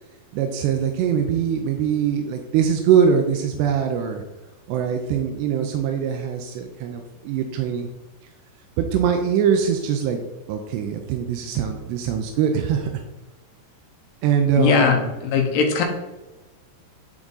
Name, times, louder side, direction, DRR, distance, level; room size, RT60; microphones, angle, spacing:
voice 1, 0.3-4.2 4.7-7.9 8.8-10.2 10.5-13.0 14.2-15.1, right 8 dB, 90° right, 4 dB, 2.8 m, -22 dB
voice 2, 14.6-15.0 15.3-15.8, left 6 dB, 80° left, 3 dB, 2.9 m, -18 dB
11.0 x 3.7 x 4.0 m, 1.1 s
omnidirectional pair, 4.9 m